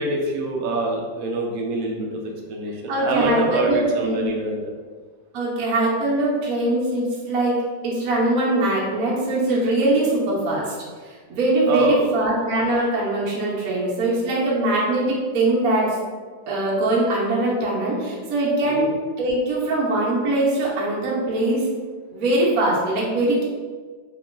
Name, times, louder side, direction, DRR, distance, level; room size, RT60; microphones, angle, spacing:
voice 1, 0.0-4.7 11.7-12.2 18.6-18.9, right 2 dB, 80° right, 0 dB, 0.7 m, -25 dB
voice 2, 2.9-4.3 5.3-10.7 11.1-15.9 16.5-21.7 22.1-23.4, right 1 dB, 55° right, -5 dB, 1.2 m, -22 dB
3.0 x 2.9 x 3.7 m, 1.5 s
omnidirectional pair, 2.0 m